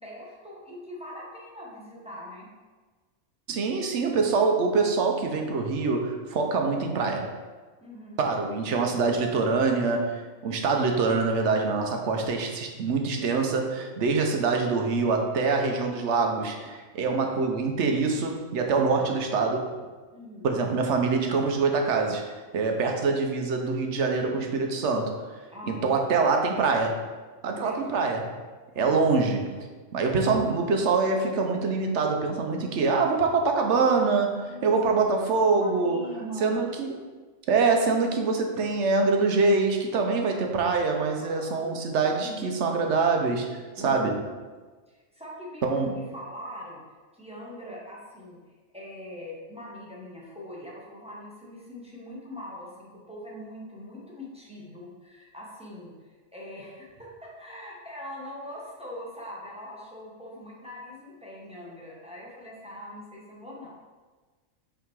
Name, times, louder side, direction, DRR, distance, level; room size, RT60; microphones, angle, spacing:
voice 1, 0.0-2.5 7.8-8.2 20.1-20.6 25.5-26.1 27.5-28.1 28.7-29.0 34.5-34.8 35.5-36.6 41.2-41.8 42.2-42.4 43.8-44.2 44.9-46.8 47.1-48.4 48.7-55.9 56.3-63.7, left 1 dB, 5° right, -5 dB, 1.2 m, -42 dB
voice 2, 3.5-7.3 8.2-19.7 20.4-25.1 25.7-27.0 27.4-28.2 28.8-29.4 29.9-36.0 36.4-37.0 37.5-44.1 45.6-46.0, right 4 dB, 65° right, 3 dB, 1.0 m, -25 dB
5.7 x 3.8 x 4.6 m, 1.4 s
omnidirectional pair, 1.4 m